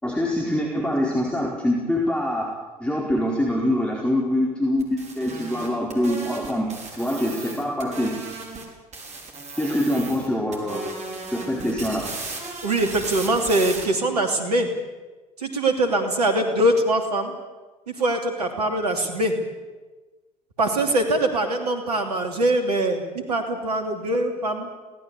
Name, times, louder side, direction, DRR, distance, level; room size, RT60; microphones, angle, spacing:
voice 1, 0.0-2.5 2.8-8.1 9.6-10.8 11.3-12.1, left 1 dB, 5° left, -2 dB, 4.6 m, -24 dB
sound 1, 4.8-8.7 8.9-10.3 10.5-13.8, right 3 dB, 35° right, 5.5 m, -36 dB
voice 2, 12.6-14.7 15.4-17.3 17.9-19.3 20.6-24.7, right 1 dB, 80° right, 4 dB, 3.0 m, -23 dB
24.0 x 18.0 x 8.5 m, 1.2 s
figure-of-eight pair, 65°, 20 cm